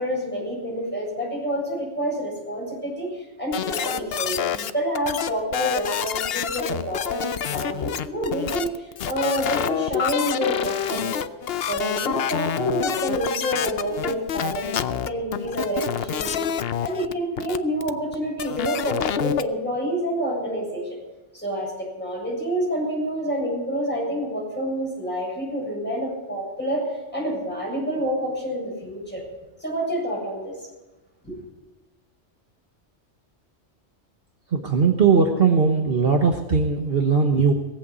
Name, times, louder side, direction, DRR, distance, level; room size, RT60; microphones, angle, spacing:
voice 1, 0.0-11.3 11.6-21.0 21.3-29.2 29.6-30.6 31.2-31.4, equal, 10° left, -4 dB, 7.4 m, -28 dB
sound 1, 3.5-4.7 4.9-19.4, left 9 dB, 60° left, 0.8 m, -27 dB
voice 2, 34.5-37.5, right 5 dB, 55° right, 3 dB, 1.4 m, -19 dB
19.0 x 8.2 x 8.2 m, 1.1 s
omnidirectional pair, 1.2 m